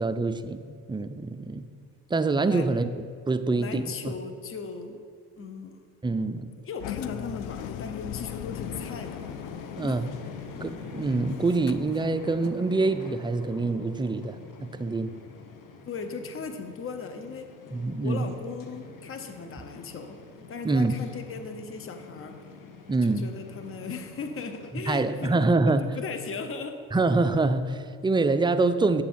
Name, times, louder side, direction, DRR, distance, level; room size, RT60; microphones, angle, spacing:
voice 1, 0.0-1.7 2.1-2.9 3.3-4.1 6.0-6.5 9.8-10.0 10.6-15.1 17.7-18.4 20.6-20.9 22.9-23.3 24.7-26.0 26.9-29.0, right 3 dB, 10° right, 10 dB, 0.4 m, -25 dB
voice 2, 3.6-5.0 5.4-5.8 6.6-9.3 9.8-10.0 15.9-17.5 18.0-20.2 20.5-22.5 23.0-25.3 25.9-26.8, left 4 dB, 30° left, 7 dB, 0.9 m, -37 dB
Engine, 6.8-12.6, left 11 dB, 70° left, 0.5 m, -39 dB
sound 1, 8.5-24.7, left 5 dB, 50° left, 1.3 m, -44 dB
9.2 x 7.2 x 4.5 m, 2.1 s
hypercardioid pair, 65°, 42 cm